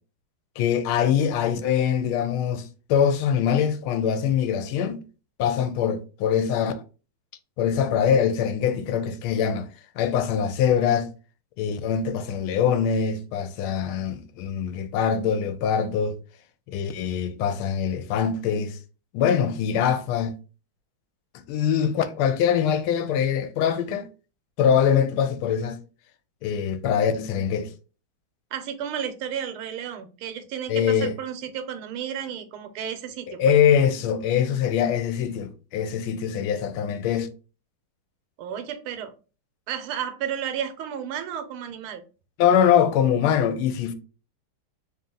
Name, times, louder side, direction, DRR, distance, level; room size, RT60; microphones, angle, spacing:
voice 1, 0.6-5.0 5.4-6.7 7.6-9.7 10.0-11.1 11.6-16.2 16.7-18.8 19.1-20.4 21.5-24.1 24.6-25.8 26.4-27.7 30.7-31.1 33.3-37.3 42.4-43.9, left 8 dB, 90° left, 1.5 m, -23 dB
voice 2, 28.5-33.4 38.4-39.1 39.7-42.0, right 8 dB, 90° right, 1.5 m, -32 dB
3.4 x 2.8 x 3.7 m
omnidirectional pair, 2.3 m